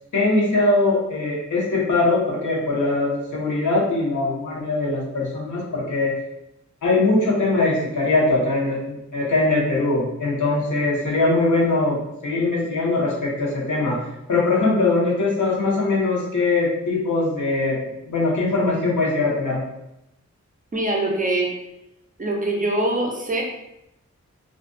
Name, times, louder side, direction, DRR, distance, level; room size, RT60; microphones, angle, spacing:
voice 1, 0.1-6.1 6.8-14.0 14.3-17.8 18.1-19.6, left 2 dB, 90° left, -5 dB, 0.9 m, -21 dB
voice 2, 20.7-21.5 22.2-23.4, right 2 dB, 30° right, 0 dB, 0.4 m, -23 dB
2.4 x 2.2 x 2.5 m, 0.86 s
wide cardioid pair, 100°, 30 cm